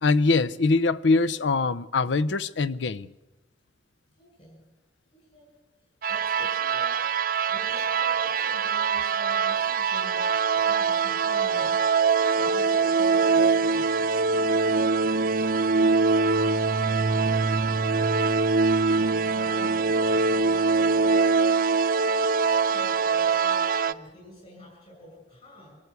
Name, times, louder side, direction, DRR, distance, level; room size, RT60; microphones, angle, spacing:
voice 1, 0.0-3.1, left 3 dB, 80° left, 0.6 m, -23 dB
voice 2, 4.2-4.6 5.1-5.5 6.1-7.0 7.5-10.2 10.5-11.8 12.3-14.6 15.7-18.4 18.9-21.1 22.7-25.8, left 1 dB, 35° left, 6.9 m, -46 dB
sound 1, 6.0-23.9, right 4 dB, 50° right, 0.7 m, -23 dB
25.5 x 14.0 x 8.3 m
head